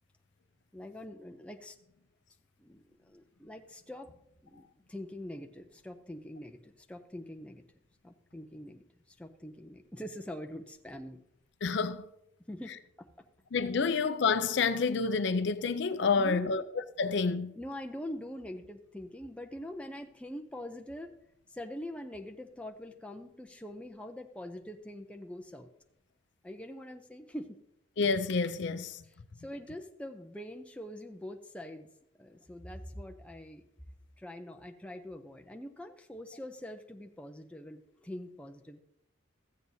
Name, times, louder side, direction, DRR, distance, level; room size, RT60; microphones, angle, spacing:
voice 1, 0.7-1.8 2.6-4.1 4.4-7.6 8.0-11.2 12.5-13.1 16.2-16.6 17.6-21.1 21.5-25.7 26.4-27.6 29.4-31.9 32.2-33.6 34.2-38.8, left 1 dB, 5° left, 0.5 m, -44 dB
voice 2, 11.6-12.0 13.5-16.6 17.0-17.5 28.0-29.0, left 4 dB, 60° left, 0.5 m, -28 dB
15.0 x 7.9 x 2.7 m
head